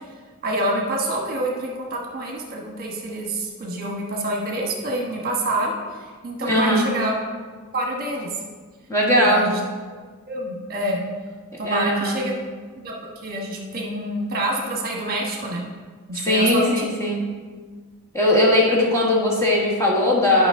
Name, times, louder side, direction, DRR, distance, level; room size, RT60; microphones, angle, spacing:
voice 1, 0.4-5.7 6.2-7.1 7.7-8.3 9.2-9.6 10.3-11.0 11.6-12.3 12.7-12.9 13.2-15.6 16.1-16.9, right 1 dB, 45° right, -1 dB, 1.2 m, -27 dB
voice 2, 6.4-6.9 8.9-9.4 11.6-12.2 16.3-17.2 18.1-20.5, left 1 dB, 15° left, -4 dB, 1.5 m, -19 dB
11.0 x 5.5 x 3.7 m, 1.5 s
head